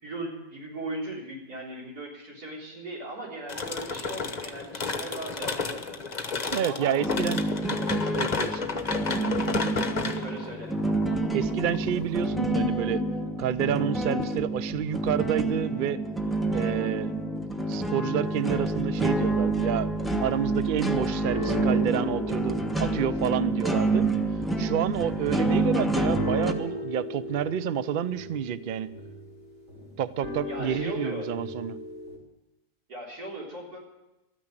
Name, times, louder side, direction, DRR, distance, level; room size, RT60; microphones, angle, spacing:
voice 1, 0.0-6.0 6.6-7.0 10.0-10.7 30.4-31.3 32.9-33.8, right 2 dB, 85° right, -3 dB, 4.4 m, -38 dB
sound 1, 3.5-12.2, left 4 dB, 30° left, 1.0 m, -32 dB
voice 2, 6.5-7.8 8.1-8.7 11.3-13.0 13.4-16.0 16.5-17.1 17.7-19.9 20.2-24.0 24.6-28.9 30.0-31.8, right 9 dB, 70° right, 15 dB, 0.4 m, -29 dB
sound 2, 7.0-26.5, right 2 dB, ahead, 0.6 m, -28 dB
sound 3, 18.3-19.4 19.7-20.1 20.5-20.9 21.2-32.2, left 1 dB, 55° right, 4.4 m, -38 dB
13.0 x 9.7 x 8.9 m, 0.99 s
omnidirectional pair, 1.6 m